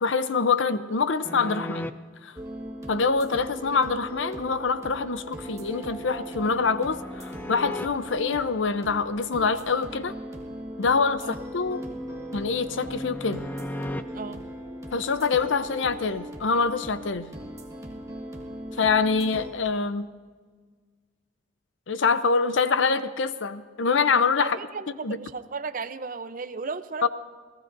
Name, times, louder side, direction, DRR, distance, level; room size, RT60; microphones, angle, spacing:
voice 1, 0.0-1.9 2.2-2.4 2.9-10.1 10.8-11.8 12.3-13.4 14.9-17.3 18.8-20.1 21.9-24.6 25.0-25.2 27.0-27.1, left 4 dB, 80° left, 12 dB, 0.7 m, -25 dB
sound 1, 1.2-1.9 5.3-7.9 11.0-14.0, left 1 dB, 10° left, 0.4 m, -38 dB
sound 2, 2.4-19.5, equal, 15° right, 1.6 m, -39 dB
voice 2, 14.1-14.5 24.4-27.1, right 4 dB, 45° right, 10 dB, 0.7 m, -35 dB
29.5 x 18.0 x 2.7 m, 1.5 s
head